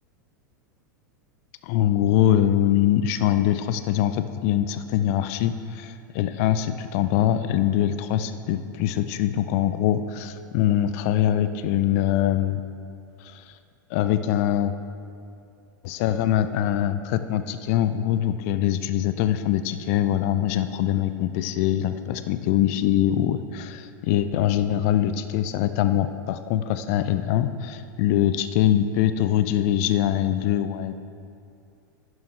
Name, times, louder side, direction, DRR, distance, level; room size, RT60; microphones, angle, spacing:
voice 1, 1.6-12.6 13.2-13.4 13.9-14.7 15.8-30.9, left 11 dB, 45° left, 11 dB, 0.5 m, -23 dB
11.0 x 11.0 x 3.2 m, 2.4 s
figure-of-eight pair, 90°, 11 cm